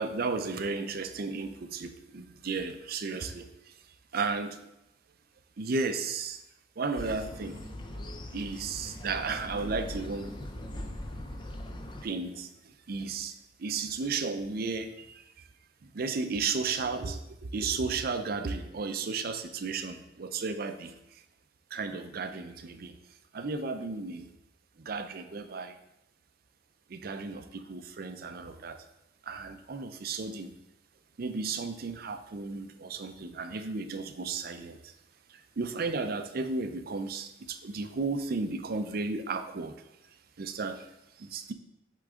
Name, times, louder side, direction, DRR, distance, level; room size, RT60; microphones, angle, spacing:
voice 1, 0.0-3.7 4.1-4.6 5.6-6.4 6.8-7.6 8.3-10.4 12.0-15.5 15.8-21.2 21.7-23.0 23.3-24.3 24.8-25.8 26.9-28.8 29.2-30.6 31.2-34.9 35.3-39.8 40.4-40.9 41.2-41.5, right 4 dB, 50° right, 9 dB, 0.5 m, -34 dB
sound 1, 7.0-12.0, left 1 dB, 25° left, 0.5 m, -40 dB
8.2 x 3.8 x 3.6 m, 0.88 s
head